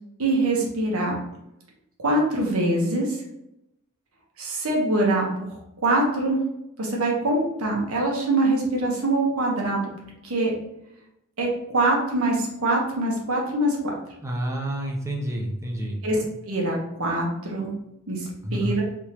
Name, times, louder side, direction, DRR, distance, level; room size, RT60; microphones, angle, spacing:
voice 1, 0.2-1.2 2.0-3.2 4.4-5.6 5.8-6.4 6.8-9.9 10.2-10.5 11.4-13.9 16.0-16.2 16.4-17.7 18.1-18.8, right 2 dB, 75° right, -2 dB, 1.2 m, -24 dB
voice 2, 14.2-16.0 18.4-18.7, right 1 dB, 15° right, 0 dB, 0.7 m, -29 dB
3.7 x 3.5 x 3.0 m, 0.85 s
head